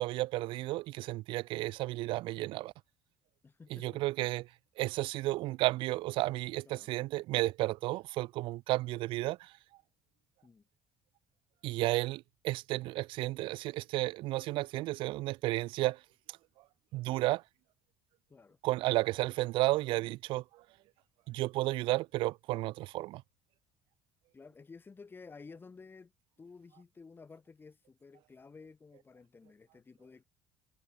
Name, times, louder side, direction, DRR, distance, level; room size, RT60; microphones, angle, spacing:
voice 1, 0.0-2.7 3.7-4.5 4.8-9.5 11.6-16.0 16.9-17.4 18.6-20.4 21.3-23.2, right 18 dB, 75° right, 0.7 m, -32 dB
voice 2, 3.4-4.0 6.6-6.9 10.4-10.6 18.3-18.6 19.9-20.1 24.3-26.1 26.4-30.2, left 4 dB, 25° left, 4.8 m, -53 dB
cardioid pair, 105°, 9 cm